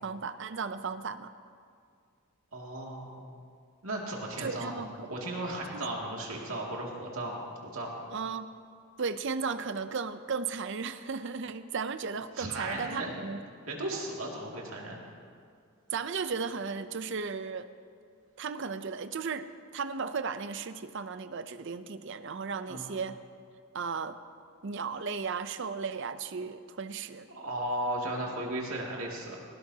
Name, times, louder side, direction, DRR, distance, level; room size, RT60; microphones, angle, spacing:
voice 1, 0.0-1.3 4.4-5.1 5.7-5.8 8.1-8.5 9.0-13.4 15.9-17.7 18.4-19.5 19.7-23.2 23.7-24.2 24.6-27.3, right 5 dB, 55° right, 12 dB, 0.5 m, -35 dB
voice 2, 2.5-3.2 3.8-7.9 12.4-13.2 13.7-15.0 22.7-22.8 27.3-29.4, right 1 dB, 70° right, -2 dB, 2.4 m, -36 dB
18.5 x 17.5 x 2.8 m, 2.2 s
head